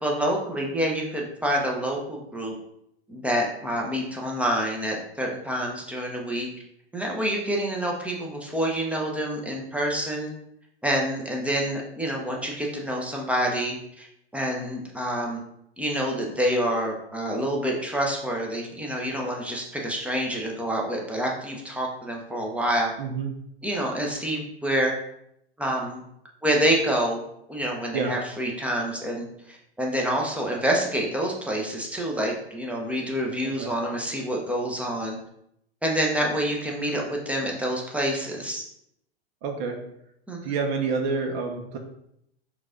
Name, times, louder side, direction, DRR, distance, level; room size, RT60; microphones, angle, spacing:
voice 1, 0.0-2.6 3.1-6.5 6.9-10.3 10.8-14.1 14.3-15.4 15.8-22.9 23.6-24.9 25.6-26.0 26.4-27.2 27.5-35.2 35.8-38.6 40.3-40.5, right 1 dB, 5° right, -1 dB, 0.7 m, -27 dB
voice 2, 23.0-23.3 27.9-28.2 33.6-33.7 39.4-39.8 40.4-41.8, right 4 dB, 45° right, 3 dB, 0.7 m, -28 dB
4.6 x 2.4 x 3.8 m, 0.76 s
hypercardioid pair, 110°, 32 cm